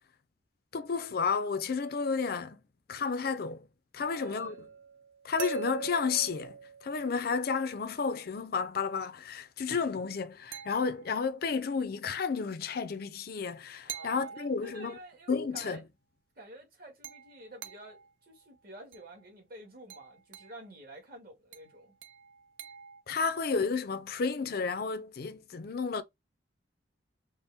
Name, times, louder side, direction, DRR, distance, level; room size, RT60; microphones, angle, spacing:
voice 1, 0.7-2.6 2.9-3.7 3.9-4.6 5.2-15.0 15.3-15.8 23.1-26.0, left 5 dB, 55° left, 0.5 m, -32 dB
voice 2, 4.0-4.7 13.8-15.8 16.3-21.9, right 1 dB, 50° right, 1.7 m, -50 dB
sound 1, 4.4-7.4 10.5-11.3 13.9-15.1 17.0-18.1 18.9-19.2 19.9-20.6 21.5-23.0, right 7 dB, 85° right, 0.5 m, -44 dB
4.3 x 2.1 x 3.4 m
head